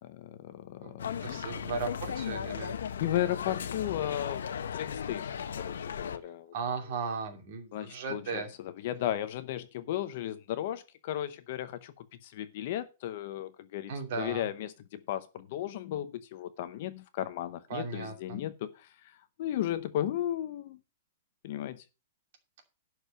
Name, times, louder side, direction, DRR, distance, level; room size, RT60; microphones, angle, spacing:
voice 1, 0.0-1.5 3.0-6.5 7.7-18.9 19.4-20.8 21.4-21.8, left 12 dB, 35° left, 0.8 m, -35 dB
sound 1, 1.0-6.2, left 8 dB, 85° left, 1.1 m, -36 dB
voice 2, 1.2-2.8 6.5-8.5 13.9-14.5 17.7-18.4, right 5 dB, 35° right, 2.6 m, -36 dB
11.5 x 4.8 x 6.7 m
hypercardioid pair, 180°, 0 cm